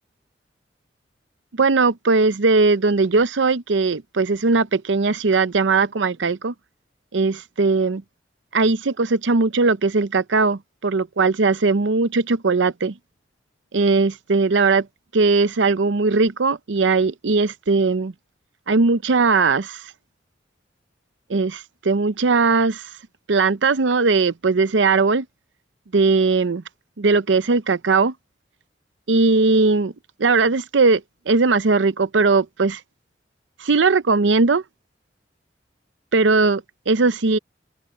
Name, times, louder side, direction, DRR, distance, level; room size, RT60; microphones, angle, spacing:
voice 1, 1.5-6.5 7.1-8.0 8.5-12.9 13.7-14.9 15.1-18.1 18.7-19.8 21.3-22.9 23.3-25.3 25.9-26.6 27.0-28.1 29.1-29.9 30.2-31.0 31.3-32.8 33.6-34.6 36.1-37.4, right 4 dB, 85° right, 0.7 m, -19 dB
open air
head